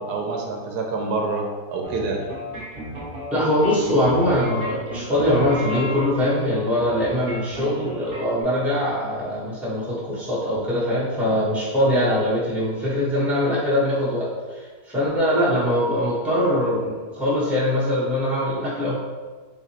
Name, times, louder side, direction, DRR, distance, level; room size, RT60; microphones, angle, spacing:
voice 1, 0.0-2.2, right 3 dB, 80° right, 1 dB, 1.2 m, -27 dB
sound 1, 1.8-8.4, equal, 40° right, 1.0 m, -34 dB
voice 2, 3.3-14.6 14.9-19.0, left 1 dB, ahead, -9 dB, 1.0 m, -22 dB
4.0 x 3.5 x 3.0 m, 1.4 s
omnidirectional pair, 1.7 m